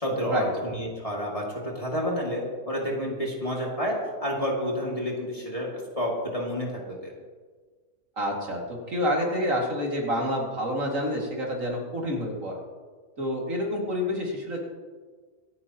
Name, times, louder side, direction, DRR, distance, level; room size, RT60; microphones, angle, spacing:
voice 1, 0.0-7.1, equal, 25° left, -3 dB, 2.5 m, -30 dB
voice 2, 8.2-8.6 8.9-12.5 13.2-14.6, equal, 60° right, -2 dB, 2.8 m, -28 dB
26.0 x 9.2 x 3.0 m, 1.5 s
omnidirectional pair, 1.5 m